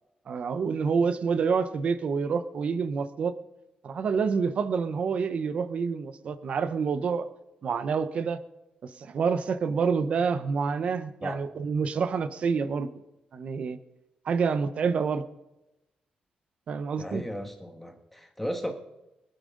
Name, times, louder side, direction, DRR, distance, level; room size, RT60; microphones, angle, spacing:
voice 1, 0.3-3.3 3.8-7.3 7.6-8.4 8.8-12.9 13.3-13.8 14.2-15.2 16.7-17.2, right 5 dB, 50° right, 12 dB, 0.8 m, -27 dB
voice 2, 17.0-18.7, equal, 5° left, 3 dB, 1.6 m, -35 dB
25.5 x 9.0 x 3.8 m, 0.96 s
wide cardioid pair, 160°, 3 cm